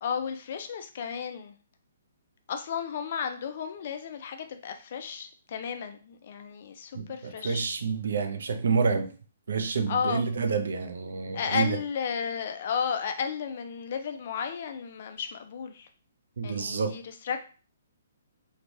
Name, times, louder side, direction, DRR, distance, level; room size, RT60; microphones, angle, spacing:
voice 1, 0.0-1.5 2.5-7.6 9.9-10.2 11.3-15.9 16.4-17.4, left 7 dB, 40° left, 0.3 m, -33 dB
voice 2, 6.9-9.1 9.5-11.8 16.4-17.0, right 5 dB, 65° right, 0.4 m, -28 dB
3.2 x 2.2 x 2.6 m
hypercardioid pair, 175°, 0 cm